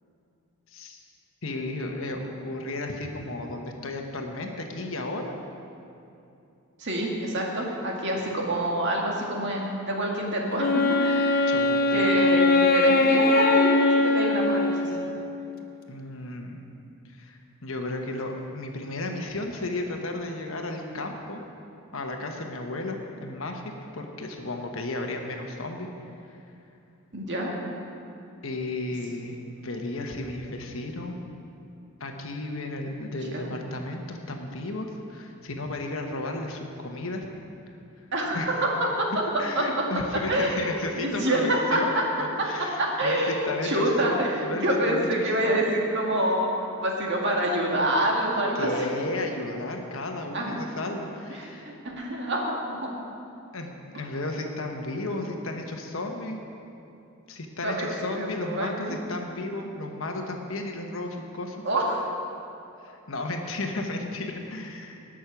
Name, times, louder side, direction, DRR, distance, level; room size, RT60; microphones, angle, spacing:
voice 1, 0.7-1.0 1.4-5.3 11.5-12.0 15.9-16.6 17.1-21.4 21.9-25.9 28.4-31.1 32.0-37.2 38.3-38.6 39.4-43.2 43.4-45.7 48.6-51.7 53.5-56.4 57.3-61.6 62.8-65.0, left 2 dB, 65° left, 3 dB, 1.2 m, -33 dB
voice 2, 6.8-11.5 11.9-14.9 27.1-27.5 33.3-33.5 38.1-38.4 39.0-39.1 39.5-39.7 40.3-41.8 42.8-46.5 46.8-48.9 50.3-50.6 51.3-52.9 57.6-59.0 61.6-62.0, right 1 dB, 55° right, -1 dB, 2.0 m, -27 dB
Wind instrument woodwind instrument, 10.6-15.4, left 2 dB, 45° left, 0.7 m, -21 dB
18.5 x 6.3 x 6.1 m, 2.7 s
head